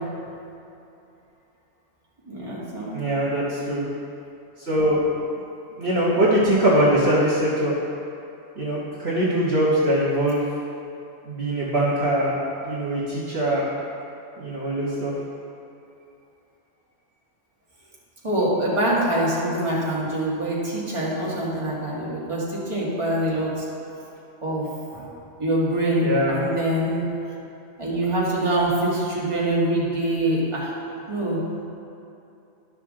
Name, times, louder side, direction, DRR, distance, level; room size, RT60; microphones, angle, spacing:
voice 1, 2.3-2.9 18.2-23.7 24.4-25.1 25.4-27.1 27.8-30.7 31.1-31.4, right 1 dB, 25° right, -7 dB, 1.8 m, -24 dB
voice 2, 2.9-3.9 4.6-5.1 5.8-7.7 8.6-10.5 11.2-12.4 12.6-13.7 14.4-15.1 26.0-26.4, right 1 dB, 55° right, -8 dB, 1.5 m, -22 dB
12.0 x 6.0 x 3.7 m, 2.7 s
omnidirectional pair, 1.3 m